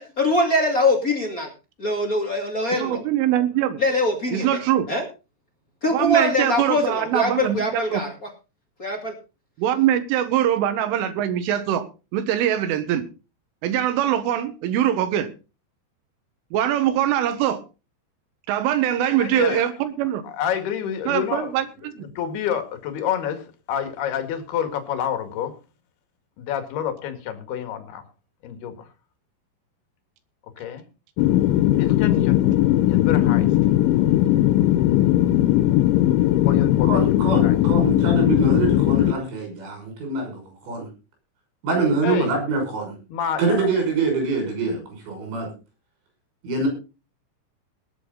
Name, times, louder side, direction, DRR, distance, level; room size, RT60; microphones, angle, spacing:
voice 1, 0.0-1.5 1.8-3.0 3.8-4.5 4.9-5.0 5.8-8.1 8.8-9.1, left 1 dB, 30° left, 1 dB, 1.5 m, -22 dB
voice 2, 2.8-3.8 4.3-4.9 5.9-8.0 9.6-13.1 13.6-15.3 16.5-17.6 18.5-20.2 21.1-21.7 21.9-22.1, right 11 dB, 85° right, 10 dB, 3.9 m, -22 dB
voice 3, 19.0-19.7 20.2-21.5 22.0-25.5 26.4-28.0 28.4-28.9 30.6-30.8 31.7-32.4 32.9-33.5 36.4-37.0 37.4-37.6 42.0-42.3 43.1-43.7, left 9 dB, 60° left, 7 dB, 3.6 m, -28 dB
sound 1, 31.2-39.1, left 14 dB, 80° left, 3.2 m, -18 dB
voice 4, 36.9-40.9 41.6-42.9 43.4-44.8 45.1-45.5 46.4-46.7, right 4 dB, 65° right, 3 dB, 8.0 m, -24 dB
20.0 x 8.3 x 3.9 m, 0.31 s
omnidirectional pair, 5.6 m